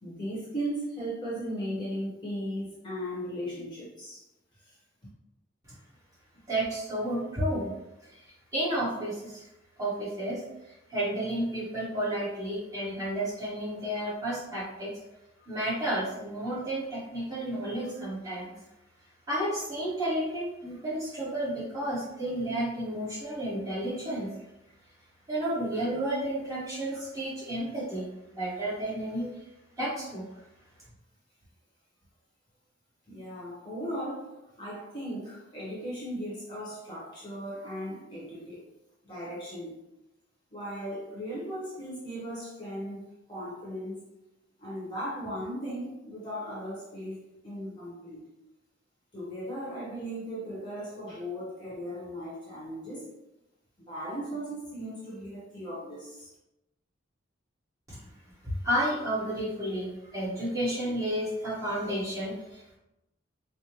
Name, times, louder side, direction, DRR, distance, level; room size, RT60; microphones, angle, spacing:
voice 1, 0.0-4.2 4.6-4.7 33.1-38.6 39.0-39.7 40.5-44.0 44.6-48.2 49.1-53.1 53.8-56.3, equal, 20° left, -7 dB, 1.0 m, -37 dB
voice 2, 6.5-7.7 8.0-9.5 9.8-14.9 15.4-18.5 19.3-24.3 25.3-28.1 28.4-29.3 29.8-30.2 57.9-58.0 58.4-62.8, right 1 dB, 15° right, -9 dB, 1.3 m, -32 dB
5.0 x 2.1 x 2.9 m, 0.92 s
head